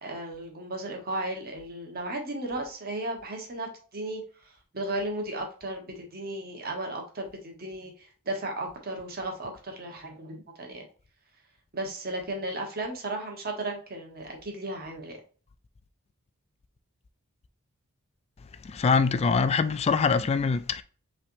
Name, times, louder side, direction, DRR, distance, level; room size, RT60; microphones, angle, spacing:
voice 1, 0.0-4.2 4.7-7.9 8.2-10.8 11.7-15.2, right 1 dB, 45° right, 1.3 m, -35 dB
voice 2, 18.6-20.8, left 5 dB, 30° left, 0.3 m, -24 dB
5.5 x 3.4 x 2.7 m
head